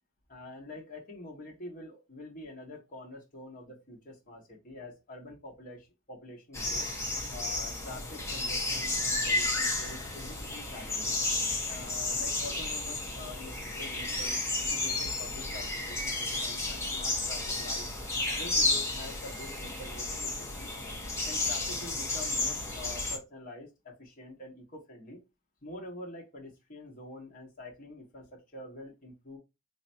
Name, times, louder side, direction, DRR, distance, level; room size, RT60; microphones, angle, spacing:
voice 1, 0.3-6.9 7.3-11.2 11.7-17.9 18.3-20.7 21.3-25.2 25.6-29.4, left 2 dB, 45° left, -1 dB, 1.4 m, -46 dB
sound 1, 6.5-23.2, left 2 dB, 15° left, 0.9 m, -32 dB
4.3 x 3.1 x 2.6 m, 0.25 s
head